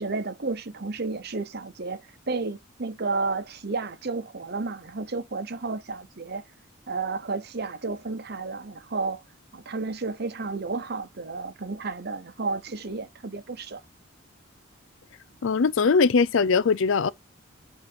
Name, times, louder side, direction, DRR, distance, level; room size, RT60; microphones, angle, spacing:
voice 1, 0.0-2.0 2.3-6.4 6.9-9.2 9.5-13.8, right 3 dB, 50° right, 0.9 m, -32 dB
voice 2, 15.4-17.1, left 5 dB, 70° left, 0.5 m, -21 dB
7.9 x 3.0 x 5.0 m
head